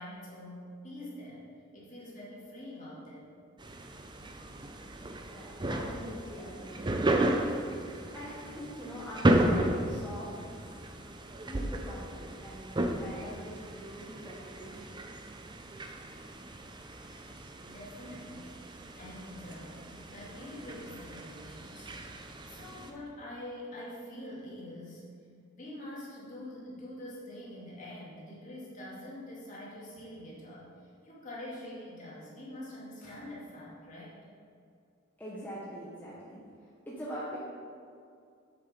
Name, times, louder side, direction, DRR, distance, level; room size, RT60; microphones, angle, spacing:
voice 1, 0.0-1.4 1.7-3.3 17.6-18.5 19.0-21.9 22.2-25.1 25.6-34.2, left 1 dB, 40° left, -6 dB, 2.5 m, -45 dB
sound 1, 3.6-22.9, right 1 dB, 20° right, 0.6 m, -34 dB
voice 2, 5.2-7.7 8.1-11.1 11.4-15.2 35.2-37.4, equal, 10° left, -8 dB, 1.2 m, -44 dB
7.7 x 7.6 x 5.2 m, 2.3 s
head